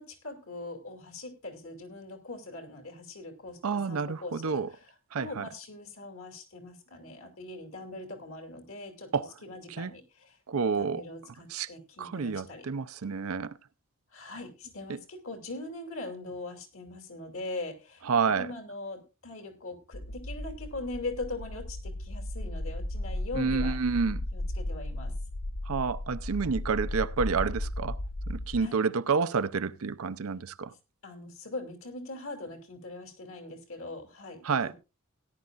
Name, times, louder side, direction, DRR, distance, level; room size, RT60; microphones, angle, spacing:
voice 1, 0.0-4.8 5.1-9.1 9.4-10.4 10.7-12.7 14.1-23.8 24.3-25.1 28.6-28.8 31.0-34.7, left 2 dB, 70° left, 2.8 m, -41 dB
voice 2, 3.6-4.7 5.1-5.5 9.1-9.3 9.7-9.9 10.5-11.0 11.5-11.7 12.0-13.5 14.9-15.0 18.1-18.5 23.3-24.2 25.7-28.0 28.3-30.7 34.4-34.7, right 5 dB, 80° right, 0.6 m, -29 dB
sound 1, 19.9-28.7, left 1 dB, 45° left, 0.6 m, -35 dB
17.5 x 10.5 x 2.5 m
head